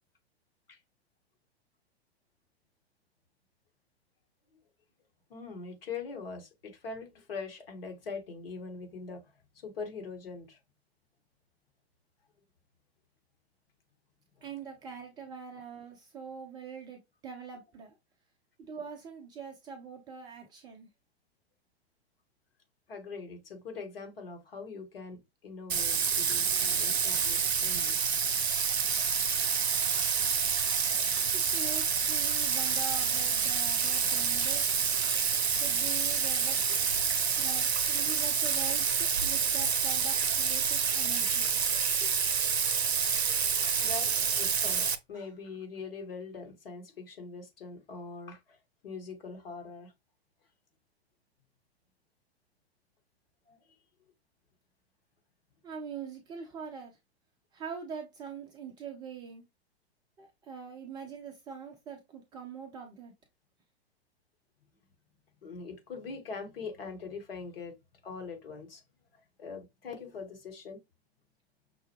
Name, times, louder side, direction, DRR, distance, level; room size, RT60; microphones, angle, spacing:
voice 1, 5.3-9.2 9.5-10.6 14.4-14.5 22.9-28.0 29.1-29.3 29.9-30.0 43.8-48.6 48.8-49.9 53.5-53.6 65.4-67.7 68.0-68.8 69.1-70.8, left 4 dB, 60° left, 1.4 m, -42 dB
voice 2, 14.4-18.0 18.7-20.9 31.3-34.8 35.6-36.6 37.3-41.5 55.6-57.0 57.5-59.4 60.2-63.1, right 6 dB, 15° right, 0.4 m, -43 dB
Bathtub (filling or washing), 25.7-45.0, right 6 dB, 75° right, 0.6 m, -28 dB
5.8 x 2.2 x 3.0 m
figure-of-eight pair, 100°, 32 cm